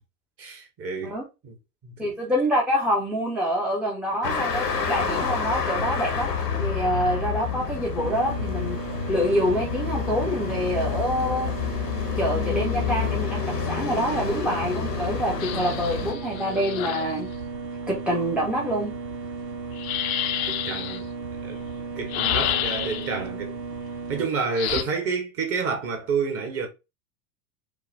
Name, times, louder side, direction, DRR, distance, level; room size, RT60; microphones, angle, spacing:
voice 1, 0.4-1.2 1.4-1.5 1.8-2.1 20.5-21.1 21.4-21.6 21.9-23.5 24.1-26.7, right 5 dB, 30° right, 1.3 m, -29 dB
voice 2, 2.0-6.3 6.6-8.8 9.1-11.5 12.2-17.3 17.9-18.9 24.7-24.8, equal, ahead, 0.7 m, -26 dB
sound 1, 4.2-16.1, left 6 dB, 80° left, 1.1 m, -29 dB
sound 2, 8.0-24.2, right 4 dB, 85° right, 0.6 m, -35 dB
sound 3, 15.4-17.1 19.7-21.0 22.1-23.2 24.6-24.8, left 11 dB, 55° left, 0.7 m, -29 dB
4.9 x 2.2 x 3.4 m
figure-of-eight pair, 85°, 48 cm